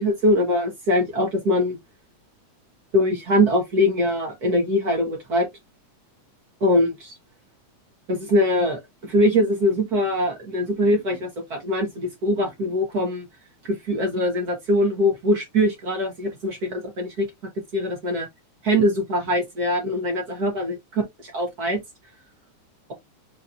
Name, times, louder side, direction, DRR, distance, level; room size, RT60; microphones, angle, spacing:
voice 1, 0.0-1.8 2.9-5.5 6.6-7.1 8.1-13.3 13.6-17.3 17.7-18.3 18.6-20.8 21.3-21.8, left 1 dB, 50° right, 1.1 m, -22 dB
4.3 x 4.1 x 2.6 m
omnidirectional pair, 3.4 m